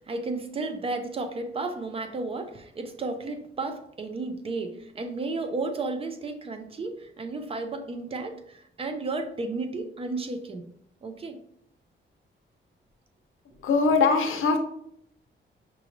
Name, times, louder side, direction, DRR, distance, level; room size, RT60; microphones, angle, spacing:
voice 1, 0.1-10.7 11.0-11.4, right 3 dB, 30° right, 6 dB, 0.4 m, -33 dB
voice 2, 13.6-14.6, left 4 dB, 85° left, 5 dB, 0.7 m, -21 dB
5.7 x 3.1 x 2.6 m, 0.70 s
wide cardioid pair, 175°, 20 cm